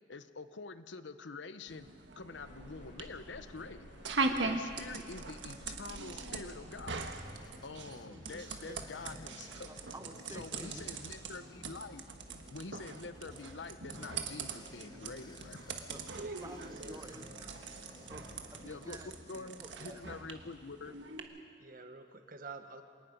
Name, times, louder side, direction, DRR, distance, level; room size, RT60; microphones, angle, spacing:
voice 1, 0.1-7.1 7.6-9.7 10.3-12.0 12.5-15.8 18.6-19.0 19.3-20.9, left 3 dB, 80° left, 12 dB, 0.9 m, -46 dB
sound 1, 1.7-21.2, right 4 dB, 75° right, 1.6 m, -42 dB
sound 2, 2.3-7.5, equal, 45° left, 4.2 m, -53 dB
sound 3, 6.8-19.6, left 2 dB, 25° left, 0.9 m, -57 dB
voice 2, 8.1-8.8 9.7-10.8 15.9-20.3, right 1 dB, 20° right, 8 dB, 1.0 m, -52 dB
voice 3, 16.2-17.4 21.6-22.8, right 3 dB, 50° right, 7 dB, 1.4 m, -49 dB
26.0 x 19.0 x 5.4 m, 2.1 s
head